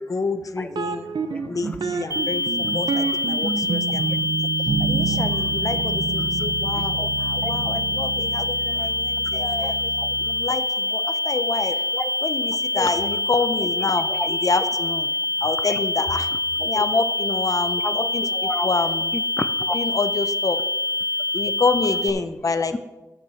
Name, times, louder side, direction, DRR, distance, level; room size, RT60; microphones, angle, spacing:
voice 1, 0.1-1.1 1.5-2.4 2.7-4.0 4.9-9.8 10.2-11.8 12.2-15.1 15.4-16.3 16.7-18.2 18.6-19.1 19.7-20.6 21.3-22.8, left 4 dB, 50° left, 10 dB, 0.7 m, -27 dB
sound 1, 0.7-10.5, right 5 dB, 80° right, 0.6 m, -29 dB
sound 2, 2.1-22.1, left 2 dB, 40° right, 0.6 m, -25 dB
voice 2, 9.6-10.1 11.9-12.1 12.7-12.9 14.1-14.4 15.7-15.8 16.6-16.8 17.8-18.7 19.1-19.7 22.7-22.8, left 2 dB, 15° left, 10 dB, 0.3 m, -31 dB
9.7 x 5.6 x 6.5 m, 1.1 s
wide cardioid pair, 95°, 8 cm